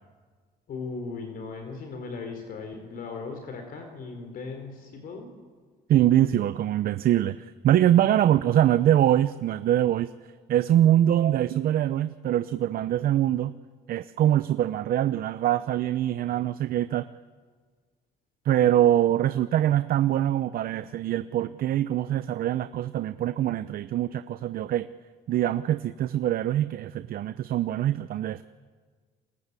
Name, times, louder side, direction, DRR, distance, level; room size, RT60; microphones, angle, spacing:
voice 1, 0.7-5.3, left 4 dB, 60° left, 5 dB, 4.4 m, -37 dB
voice 2, 5.9-10.1 10.5-13.5 13.9-17.1 18.4-24.9 25.3-28.4, right 12 dB, 60° right, 13 dB, 0.8 m, -23 dB
29.5 x 22.0 x 8.4 m, 1.5 s
cardioid pair, 110°, 17 cm